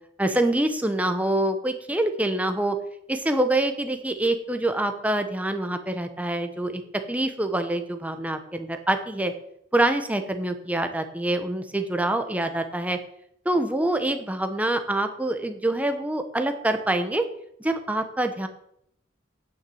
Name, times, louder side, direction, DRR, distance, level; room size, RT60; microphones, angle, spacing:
voice 1, 0.2-2.8 3.1-6.8 7.1-9.3 9.7-13.0 13.4-17.2 17.6-18.5, right 1 dB, 10° right, 7 dB, 1.0 m, -25 dB
9.8 x 6.1 x 7.8 m, 0.72 s
head